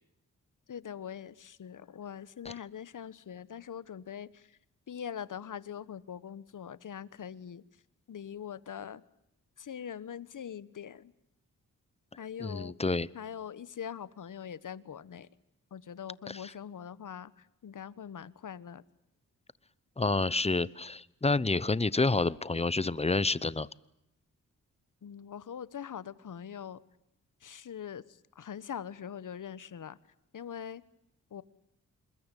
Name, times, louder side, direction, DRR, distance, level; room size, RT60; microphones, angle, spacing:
voice 1, 0.7-4.5 4.9-7.6 8.1-9.0 9.6-11.1 12.2-12.8 13.1-15.3 15.7-18.8 25.0-26.8 27.4-28.0 28.3-30.0 30.3-30.8 31.3-31.4, left 8 dB, 65° left, 17 dB, 1.3 m, -42 dB
voice 2, 12.4-13.1 16.3-16.5 20.0-23.7, left 3 dB, 20° left, 20 dB, 0.9 m, -29 dB
27.0 x 21.5 x 9.1 m, 0.82 s
cardioid pair, 60°, 34 cm